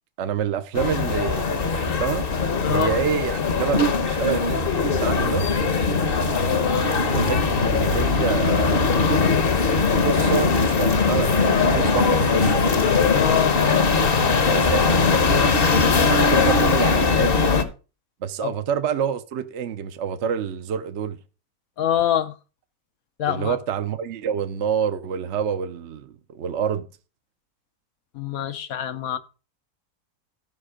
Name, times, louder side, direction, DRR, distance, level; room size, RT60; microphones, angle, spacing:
voice 1, 0.2-2.2 2.7-5.4 7.1-9.2 10.0-12.9 14.5-15.5 16.0-17.3 18.2-21.2 23.3-26.9, right 8 dB, 60° right, 0.9 m, -27 dB
sound 1, 0.7-17.6, left 4 dB, 45° left, 1.1 m, -20 dB
voice 2, 2.6-3.0 13.1-13.6 18.4-18.5 21.8-22.3 23.2-23.6 28.1-29.2, left 10 dB, 70° left, 1.2 m, -25 dB
13.0 x 5.3 x 4.9 m
omnidirectional pair, 1.6 m